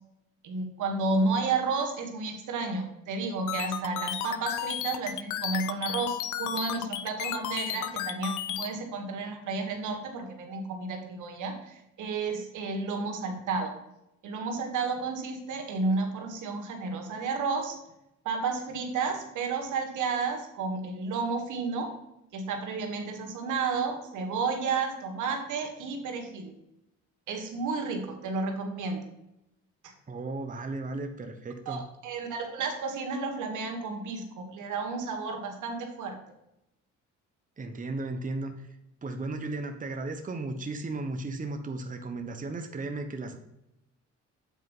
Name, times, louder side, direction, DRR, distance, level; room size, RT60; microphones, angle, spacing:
voice 1, 0.4-13.8 14.2-17.8 18.3-21.9 22.3-26.5 27.3-29.1 29.8-29.9 31.7-36.2, right 4 dB, 80° right, 3 dB, 1.7 m, -32 dB
sound 1, 3.5-8.7, left 11 dB, 85° left, 0.6 m, -33 dB
voice 2, 30.1-31.8 37.6-38.7 39.0-43.4, right 2 dB, 25° right, 5 dB, 1.0 m, -35 dB
8.2 x 4.5 x 5.4 m, 0.86 s
cardioid pair, 90°, 30 cm